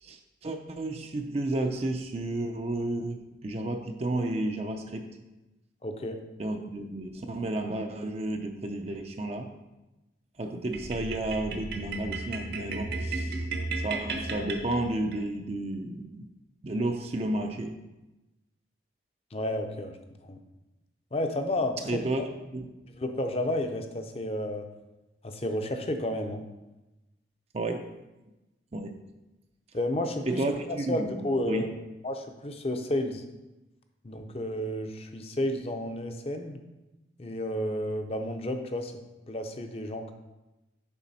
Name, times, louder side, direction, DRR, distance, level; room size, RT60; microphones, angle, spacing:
voice 1, 0.0-5.1 6.4-9.5 10.4-13.4 13.8-16.2 16.6-17.8 21.9-22.7 27.5-27.9 28.7-29.0 30.3-31.1 31.5-31.7, right 2 dB, 35° right, 5 dB, 0.4 m, -32 dB
voice 2, 5.8-6.2 19.3-20.0 20.2-20.4 21.1-22.3 22.9-24.7 25.2-26.4 29.7-30.4 30.9-31.7 32.0-33.2 34.0-36.6 37.2-38.9 39.3-40.1, left 1 dB, 35° left, 6 dB, 0.6 m, -31 dB
sound 1, 10.7-15.2, right 3 dB, 60° right, 0.9 m, -34 dB
7.1 x 5.0 x 4.1 m, 1.0 s
head